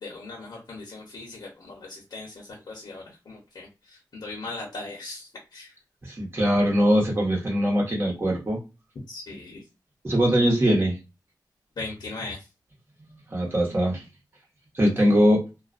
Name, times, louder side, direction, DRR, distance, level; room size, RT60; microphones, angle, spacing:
voice 1, 0.0-5.7 9.1-9.6 11.8-12.4 15.0-15.1, left 3 dB, 75° left, -2 dB, 0.8 m, -39 dB
voice 2, 6.0-8.6 10.0-11.0 13.3-14.0 14.7-15.5, equal, 30° right, -4 dB, 0.9 m, -21 dB
2.3 x 2.1 x 2.5 m, 0.27 s
wide cardioid pair, 80°, 8 cm